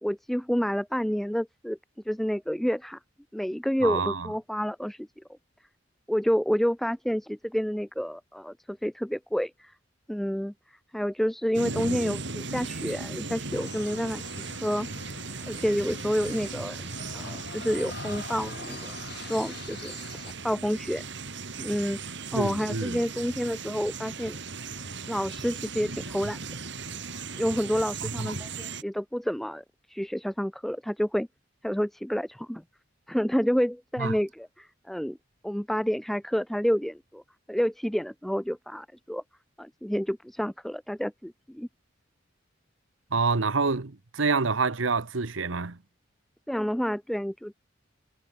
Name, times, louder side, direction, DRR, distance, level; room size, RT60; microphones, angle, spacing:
voice 1, 0.0-1.8 2.1-3.0 3.3-5.1 6.1-9.7 10.1-10.5 10.9-16.8 17.1-19.0 19.3-20.0 20.4-21.0 21.6-24.4 25.1-26.4 27.3-31.3 31.6-32.6 33.1-35.2 35.4-37.2 37.5-39.2 39.6-41.7 46.5-47.6, equal, ahead, 0.3 m, -29 dB
voice 2, 3.8-4.3 22.3-23.0 28.0-28.3 34.0-34.1 43.1-45.8, right 4 dB, 85° right, 1.2 m, -27 dB
sound 1, 11.5-28.8, right 4 dB, 65° right, 5.4 m, -37 dB
sound 2, 13.5-20.3, left 4 dB, 60° left, 5.2 m, -44 dB
head